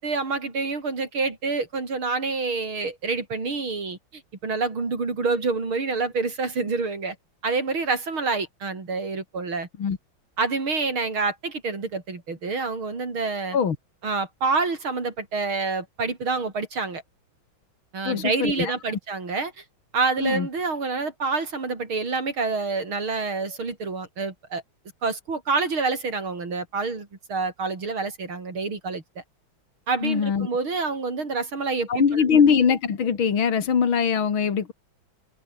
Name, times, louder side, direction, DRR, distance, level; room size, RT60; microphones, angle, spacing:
voice 1, 0.0-7.1 7.4-9.7 10.4-13.6 14.0-17.0 17.9-19.6 19.9-24.6 25.0-29.0 29.9-32.0, right 4 dB, 80° right, 5.2 m, -27 dB
voice 2, 18.0-19.0 20.2-20.5 30.0-30.5 31.9-34.7, left 6 dB, 75° left, 3.0 m, -22 dB
omnidirectional pair, 2.2 m